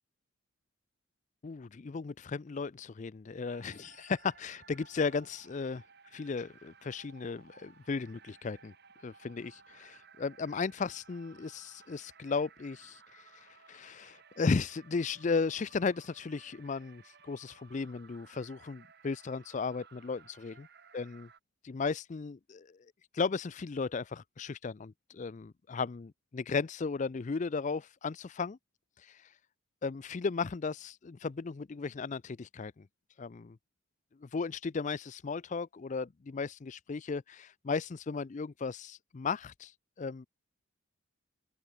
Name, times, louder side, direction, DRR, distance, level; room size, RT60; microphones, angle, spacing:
voice 1, 1.4-5.8 6.1-8.7 9.0-20.7 20.9-21.3 21.6-22.8 23.1-28.6 29.0-29.2 29.8-32.9 33.2-33.6 34.2-39.7 40.0-40.3, left 4 dB, 35° left, 0.4 m, -35 dB
sound 1, 3.4-21.4, right 6 dB, 50° right, 2.6 m, -59 dB
open air
head